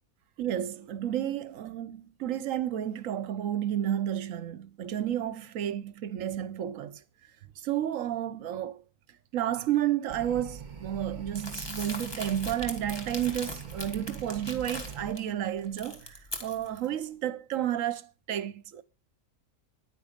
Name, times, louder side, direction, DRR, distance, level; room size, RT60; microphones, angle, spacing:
voice 1, 0.4-7.0 7.6-8.8 9.3-16.1 16.4-18.8, right 11 dB, 65° right, 1.0 m, -31 dB
sound 1, 10.1-15.1, right 6 dB, 30° right, 1.2 m, -43 dB
Crumpling crinkling, 11.3-15.2 15.6-16.9, left 1 dB, 15° left, 1.5 m, -40 dB
10.0 x 9.0 x 5.1 m
omnidirectional pair, 1.7 m